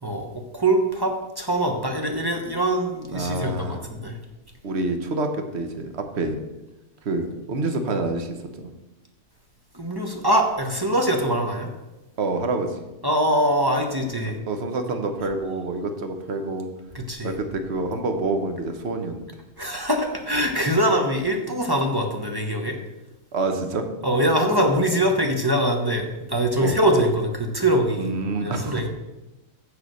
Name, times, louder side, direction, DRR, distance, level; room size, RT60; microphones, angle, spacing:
voice 1, 0.0-4.2 9.7-11.7 13.0-14.3 16.9-17.4 19.6-22.8 24.0-28.9, right 1 dB, 20° right, 2 dB, 1.0 m, -23 dB
voice 2, 3.1-3.9 4.6-6.4 7.0-8.7 12.2-12.8 14.5-16.7 17.2-19.3 23.3-23.9 26.6-26.8 28.0-28.9, right 2 dB, 55° right, 6 dB, 1.3 m, -27 dB
7.3 x 6.7 x 6.3 m, 1.0 s
omnidirectional pair, 1.4 m